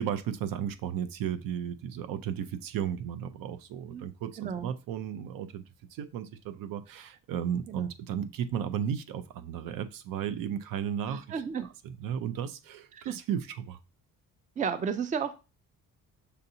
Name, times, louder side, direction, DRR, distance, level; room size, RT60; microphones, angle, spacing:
voice 1, 0.0-5.6 5.9-11.4 11.8-13.8, right 9 dB, 80° right, 0.6 m, -34 dB
voice 2, 4.4-4.7 7.7-7.9 11.1-11.7 14.6-15.3, right 6 dB, 25° right, 0.4 m, -32 dB
6.5 x 2.7 x 2.7 m
cardioid pair, 140°, 33 cm